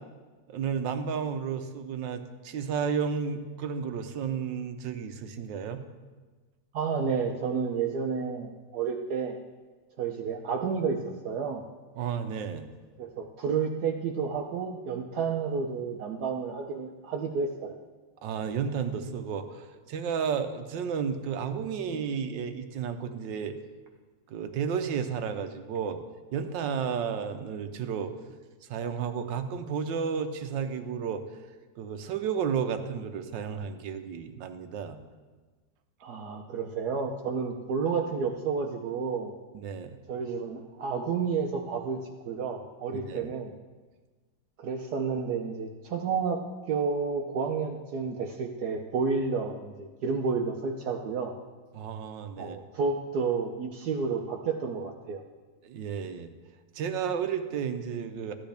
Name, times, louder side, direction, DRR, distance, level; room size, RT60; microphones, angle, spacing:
voice 1, 0.5-5.8 12.0-12.7 18.2-23.6 24.3-26.0 26.3-28.4 28.7-31.2 31.8-35.0 39.5-40.0 42.9-43.3 51.7-52.6 55.6-56.3 56.7-58.3, right 7 dB, 85° right, 8 dB, 1.5 m, -32 dB
voice 2, 6.7-9.4 10.0-11.0 11.2-11.6 13.0-17.8 36.0-39.3 40.1-42.0 42.3-43.5 44.6-46.4 46.7-51.3 52.4-55.2, right 5 dB, 65° right, 3 dB, 1.2 m, -30 dB
14.5 x 10.5 x 3.4 m, 1.3 s
omnidirectional pair, 2.0 m